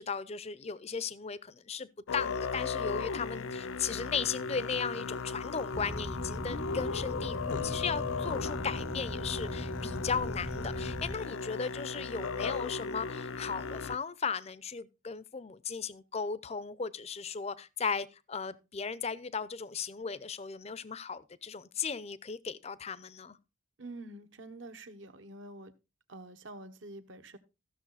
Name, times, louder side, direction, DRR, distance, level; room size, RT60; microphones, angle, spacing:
voice 1, 0.0-23.4, left 5 dB, 30° left, 0.5 m, -36 dB
Musical instrument, 2.1-14.0, left 5 dB, 75° left, 0.5 m, -36 dB
sound 1, 3.5-9.9, right 3 dB, 90° right, 1.1 m, -57 dB
sound 2, 5.7-11.2, equal, 15° right, 0.6 m, -40 dB
voice 2, 23.8-25.7 26.1-27.4, right 2 dB, 65° right, 1.2 m, -47 dB
14.5 x 6.7 x 4.0 m
head